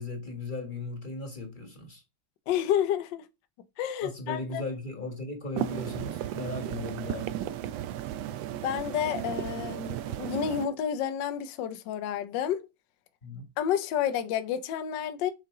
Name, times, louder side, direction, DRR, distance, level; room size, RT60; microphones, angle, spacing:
voice 1, 0.0-2.0 4.0-7.3 13.2-13.5, left 2 dB, 25° left, 1.3 m, -37 dB
voice 2, 2.5-3.2 3.8-4.6 8.5-12.6 13.6-15.3, left 9 dB, 70° left, 1.2 m, -30 dB
sound 1, 5.6-10.7, right 11 dB, 75° right, 1.1 m, -34 dB
6.5 x 4.4 x 3.6 m
omnidirectional pair, 2.4 m